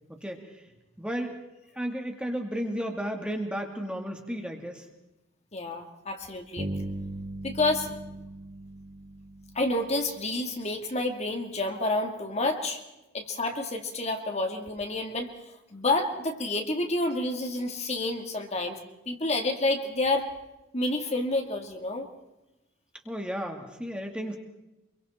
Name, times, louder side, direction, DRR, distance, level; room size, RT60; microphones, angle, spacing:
voice 1, 0.1-0.5 1.0-1.4 1.7-4.9 23.1-24.4, equal, 5° right, 2 dB, 2.2 m, -33 dB
voice 2, 5.5-6.7 7.4-8.0 9.5-12.8 13.1-15.3 15.7-18.8 19.1-20.3 20.7-22.1, left 2 dB, 35° left, 3 dB, 2.3 m, -29 dB
Bass guitar, 6.6-10.4, right 2 dB, 35° right, 2.5 m, -38 dB
26.0 x 23.5 x 4.4 m, 0.96 s
head